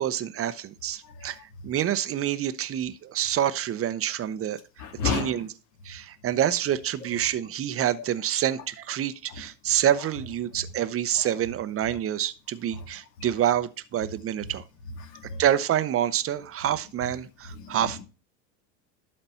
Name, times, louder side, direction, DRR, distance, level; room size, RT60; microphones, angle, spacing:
voice 1, 0.0-1.4 1.6-4.6 5.0-5.5 5.8-14.6 15.4-18.0, right 11 dB, 30° right, 0.8 m, -27 dB
voice 2, 4.8-5.4 9.3-9.4 11.1-11.3 12.7-12.8 13.2-13.3 15.0-15.4 17.5-18.0, left 6 dB, 70° left, 2.4 m, -33 dB
12.0 x 4.3 x 5.5 m
hypercardioid pair, 95°, 49 cm